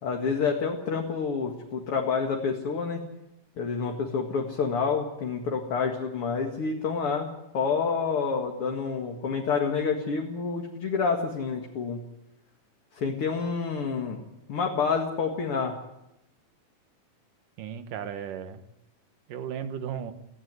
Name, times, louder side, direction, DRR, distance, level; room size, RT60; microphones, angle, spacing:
voice 1, 0.0-3.0 3.6-7.3 7.5-12.0 12.9-14.2 14.5-15.7, left 5 dB, 50° left, 2 dB, 2.7 m, -28 dB
voice 2, 17.6-18.6 19.3-20.1, right 8 dB, 90° right, 10 dB, 3.0 m, -35 dB
18.5 x 16.0 x 9.8 m, 0.89 s
omnidirectional pair, 3.6 m